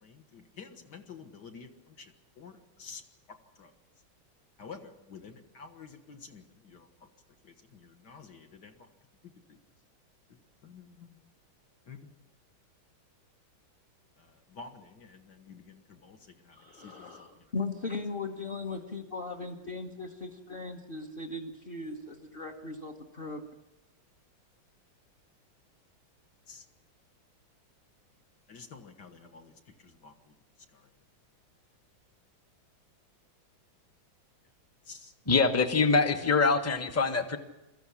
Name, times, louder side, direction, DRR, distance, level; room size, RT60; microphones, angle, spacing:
voice 1, 0.0-3.0 3.6-3.7 4.6-6.9 7.4-8.7 10.6-11.2 11.9-12.1 14.2-16.2 16.4-17.3 26.5-26.6 28.5-29.5 29.8-30.1 34.9-35.1, left 5 dB, 55° left, 6 dB, 2.1 m, -49 dB
voice 2, 16.5-23.4, left 3 dB, 30° left, 5 dB, 1.3 m, -38 dB
voice 3, 35.3-37.4, left 4 dB, 10° left, 7 dB, 0.8 m, -24 dB
22.5 x 14.5 x 9.9 m, 0.96 s
omnidirectional pair, 2.2 m